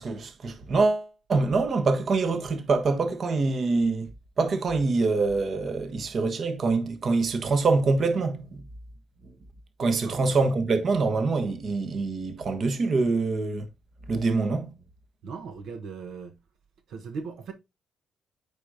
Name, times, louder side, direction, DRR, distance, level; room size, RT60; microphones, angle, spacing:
voice 1, 0.0-4.1 4.4-8.6 9.8-13.7 14.1-14.7, right 3 dB, 50° right, 1.2 m, -25 dB
voice 2, 10.0-10.4 15.2-16.3 16.9-17.5, right 5 dB, 75° right, 1.0 m, -38 dB
8.3 x 5.0 x 2.7 m
cardioid pair, 90°, 0 cm